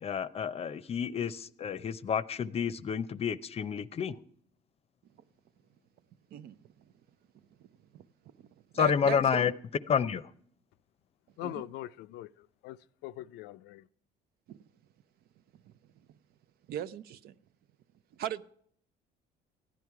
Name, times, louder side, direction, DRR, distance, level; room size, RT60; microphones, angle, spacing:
voice 1, 0.0-4.2 8.7-9.5 9.9-10.3, left 7 dB, 35° left, 0.6 m, -29 dB
voice 2, 8.7-9.4 11.4-11.6 14.5-14.6 15.6-15.7 16.7-17.3 18.1-18.4, right 10 dB, 65° right, 0.6 m, -38 dB
voice 3, 11.4-13.8, left 14 dB, 90° left, 0.4 m, -42 dB
15.5 x 11.0 x 4.7 m
cardioid pair, 110°, 17 cm